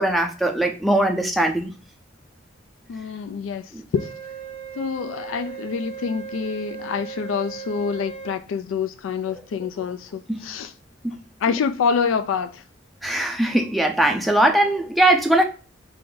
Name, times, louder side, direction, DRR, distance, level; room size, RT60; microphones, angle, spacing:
voice 1, 0.0-1.7 3.7-3.8 10.3-10.4 11.0-11.2 13.0-15.4, right 1 dB, ahead, 0.5 m, -20 dB
voice 2, 2.9-4.1 4.8-10.7 11.4-12.6, left 6 dB, 75° left, 0.3 m, -26 dB
Wind instrument woodwind instrument, 3.9-8.4, right 8 dB, 30° left, 0.8 m, -37 dB
4.6 x 2.5 x 3.8 m
head